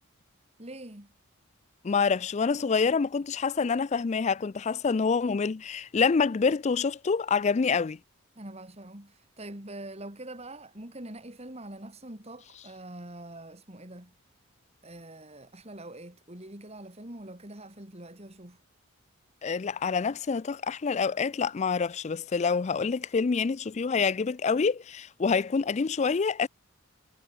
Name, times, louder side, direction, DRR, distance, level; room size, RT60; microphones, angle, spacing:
voice 1, 0.6-1.1 8.4-14.1 14.8-18.6, right 1 dB, 30° right, 3.5 m, -44 dB
voice 2, 1.8-8.0 19.4-26.5, left 5 dB, 30° left, 0.4 m, -27 dB
head